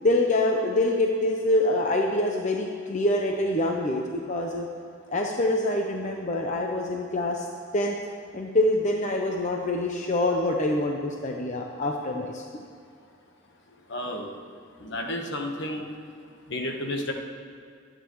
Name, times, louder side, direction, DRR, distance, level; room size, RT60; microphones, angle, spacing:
voice 1, 0.0-4.7 5.1-7.5 7.7-8.0 8.3-12.7, left 1 dB, 35° left, 1 dB, 0.7 m, -25 dB
voice 2, 13.9-14.3 14.8-15.9 16.5-17.1, left 1 dB, 60° left, 2 dB, 1.3 m, -31 dB
23.0 x 9.1 x 3.1 m, 2.3 s
head